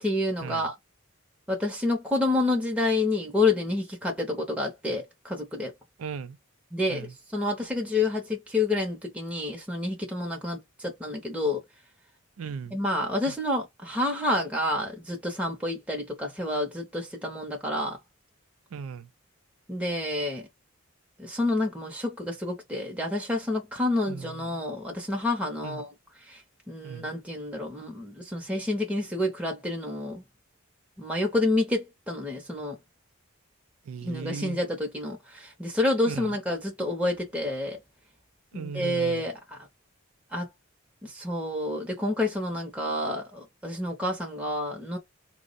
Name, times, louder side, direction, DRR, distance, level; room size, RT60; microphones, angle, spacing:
voice 1, 0.0-0.7 1.5-5.7 6.7-11.6 12.7-18.0 19.7-20.4 21.2-25.9 26.3-26.4 26.7-30.2 31.0-32.8 34.0-37.8 38.5-39.6 40.3-40.5 41.0-45.0, left 2 dB, 5° right, 0.6 m, -29 dB
voice 2, 6.0-6.4 6.9-7.1 12.4-12.8 13.3-13.4 18.7-19.1 24.0-24.6 25.6-25.8 26.8-27.1 33.9-34.6 36.0-36.3 38.5-39.2, right 6 dB, 80° right, 0.4 m, -37 dB
3.5 x 2.1 x 3.8 m
head